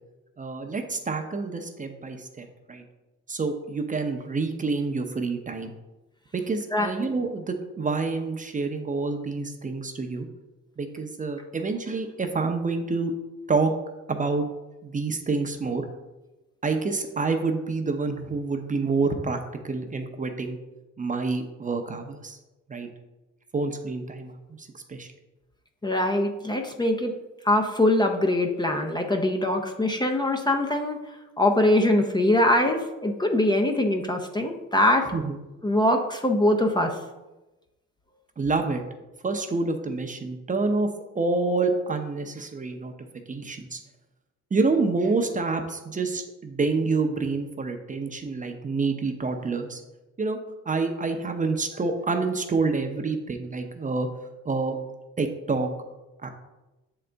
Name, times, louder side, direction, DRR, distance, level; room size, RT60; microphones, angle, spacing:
voice 1, 0.4-2.8 3.3-5.7 6.3-10.3 10.8-13.1 13.5-13.7 14.1-14.5 14.8-15.8 16.6-20.6 21.0-22.4 22.7-22.9 23.5-25.1 35.1-35.4 38.4-38.8 39.2-40.9 41.1-42.9 43.3-43.8 44.5-49.8 50.2-50.4 50.7-54.1 54.4-54.8 55.2-55.7 56.2-56.3, right 3 dB, 25° right, 5 dB, 0.7 m, -27 dB
voice 2, 25.8-27.1 27.4-31.0 31.4-35.1 35.6-37.0, left 1 dB, 15° left, 3 dB, 0.6 m, -23 dB
7.4 x 3.9 x 3.4 m, 1.1 s
cardioid pair, 90°, 30 cm